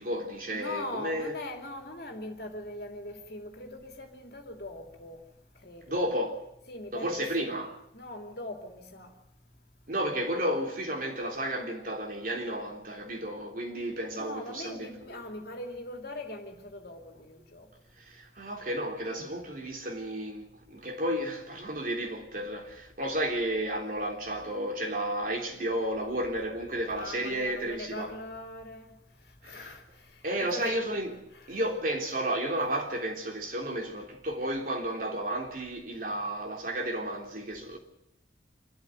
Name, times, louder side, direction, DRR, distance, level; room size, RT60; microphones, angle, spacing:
voice 1, 0.0-1.3 5.9-6.4 6.9-7.8 9.9-15.2 18.0-28.1 29.5-29.7 30.2-31.2 31.5-37.8, right 1 dB, 45° right, 3.4 m, -32 dB
voice 2, 0.5-5.2 5.6-6.1 6.7-7.6 7.9-9.1 14.1-17.7 26.9-28.9 29.2-30.7 31.3-31.7, left 1 dB, 55° left, 3.1 m, -41 dB
27.0 x 13.0 x 9.1 m
head